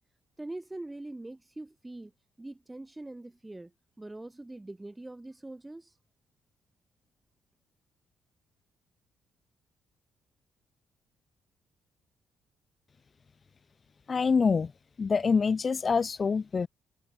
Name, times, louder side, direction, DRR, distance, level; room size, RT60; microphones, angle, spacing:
voice 1, 0.4-2.1 2.4-6.0, right 2 dB, 15° right, 2.6 m, -43 dB
voice 2, 14.1-14.7 15.0-16.7, left 5 dB, 35° left, 0.6 m, -25 dB
cardioid pair, 90°, 0 cm